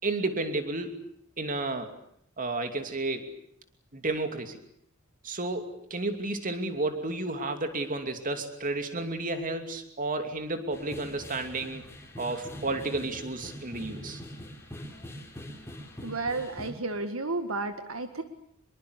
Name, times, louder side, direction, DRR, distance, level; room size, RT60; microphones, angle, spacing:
voice 1, 0.0-0.9 1.4-1.9 2.4-3.4 3.9-4.6 5.2-11.8 12.2-14.2, right 2 dB, 40° right, 7 dB, 2.8 m, -32 dB
sound 1, 10.7-16.7, equal, 10° left, 4.0 m, -43 dB
voice 2, 16.0-18.2, right 3 dB, 70° right, 8 dB, 1.8 m, -32 dB
25.5 x 22.5 x 8.2 m, 0.69 s
head